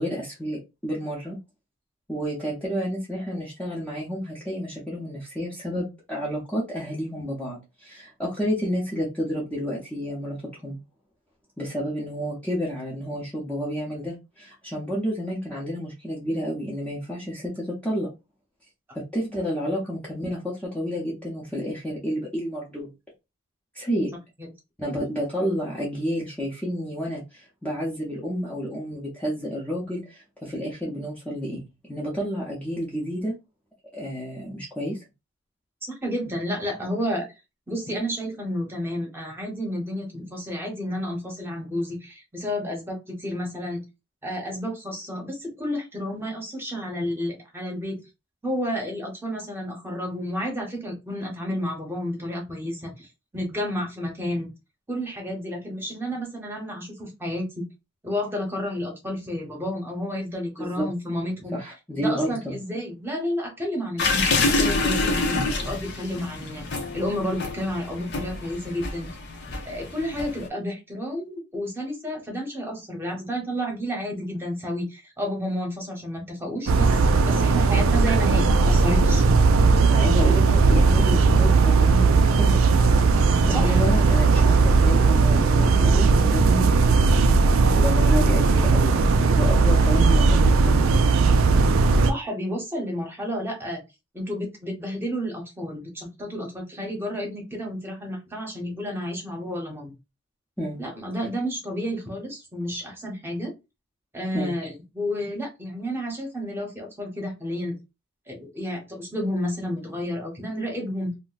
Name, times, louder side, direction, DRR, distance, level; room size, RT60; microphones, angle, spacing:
voice 1, 0.0-1.4 2.1-10.4 10.6-10.8 11.6-18.1 19.1-22.9 23.7-24.1 24.8-31.6 31.9-33.3 33.9-35.0 60.6-60.9 61.5-62.5 79.8-82.6 83.4-87.5 87.8-91.1 100.6-100.8 104.3-104.6, equal, 5° left, -5 dB, 0.6 m, -30 dB
voice 2, 36.0-37.3 37.7-43.8 44.2-48.0 48.4-53.1 53.3-54.5 54.9-57.5 58.0-61.5 62.0-64.2 64.6-66.7 66.9-69.1 69.6-79.2 83.5-83.8 86.3-86.5 92.1-93.8 94.1-99.9 100.8-103.5 104.1-107.7 108.3-111.1, equal, 10° right, 0 dB, 0.9 m, -31 dB
sound 1, 64.0-70.5, left 3 dB, 50° left, 0.7 m, -27 dB
sound 2, 76.7-92.1, right 4 dB, 70° right, 0.4 m, -18 dB
2.5 x 2.2 x 3.9 m, 0.25 s
head